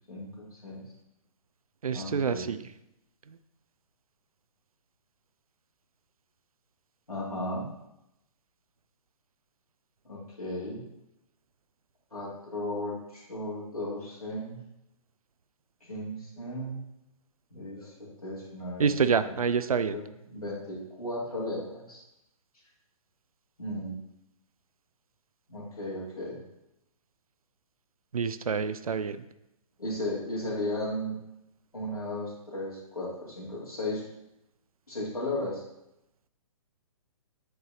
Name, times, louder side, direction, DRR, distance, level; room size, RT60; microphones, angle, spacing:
voice 1, 0.1-0.8 1.9-2.5 7.1-7.7 10.0-10.8 12.1-14.6 15.8-16.8 17.5-17.9 18.2-19.3 19.8-22.0 23.6-24.0 25.5-26.4 29.8-31.2 31.7-34.0 34.9-35.6, left 1 dB, 85° left, -6 dB, 2.5 m, -35 dB
voice 2, 1.8-2.6 3.3-3.4 18.8-20.0 28.1-29.2, right 6 dB, 75° right, 12 dB, 0.4 m, -27 dB
8.1 x 4.6 x 2.8 m, 0.85 s
figure-of-eight pair, 130°, 18 cm